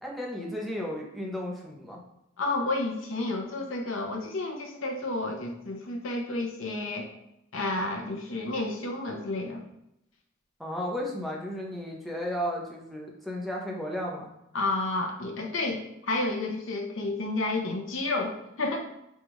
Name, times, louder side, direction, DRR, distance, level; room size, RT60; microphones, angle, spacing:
voice 1, 0.0-2.0 10.6-14.3, equal, ahead, -2 dB, 0.7 m, -34 dB
voice 2, 2.4-7.1 7.5-9.6 14.5-18.8, left 2 dB, 85° left, 2 dB, 0.7 m, -31 dB
5.3 x 2.4 x 3.0 m, 0.84 s
head